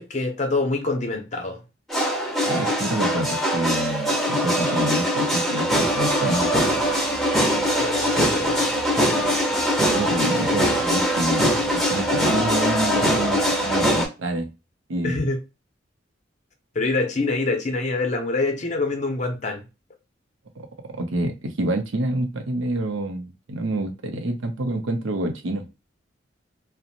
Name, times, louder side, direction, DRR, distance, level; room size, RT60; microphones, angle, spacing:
voice 1, 0.0-1.6 7.7-8.7 15.0-15.4 16.7-19.6, left 3 dB, 40° left, 0.6 m, -25 dB
sound 1, 1.9-14.1, equal, ahead, 0.6 m, -22 dB
voice 2, 2.5-6.5 9.9-14.5 14.9-15.2 20.6-20.7 21.0-25.7, right 1 dB, 80° right, 0.6 m, -27 dB
2.5 x 2.1 x 2.8 m
head